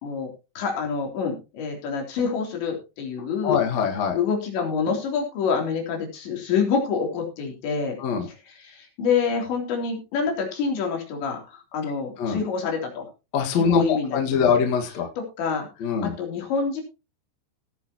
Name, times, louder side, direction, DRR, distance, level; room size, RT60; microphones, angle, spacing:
voice 1, 0.6-3.6 4.1-8.0 8.2-13.1 13.6-14.5 15.2-16.8, left 5 dB, 75° left, 1 dB, 5.6 m, -27 dB
voice 2, 3.4-4.2 8.0-8.3 12.2-12.4 13.3-15.1 15.8-16.1, left 6 dB, 50° left, 2 dB, 2.4 m, -23 dB
18.0 x 9.2 x 3.0 m, 0.30 s
omnidirectional pair, 5.2 m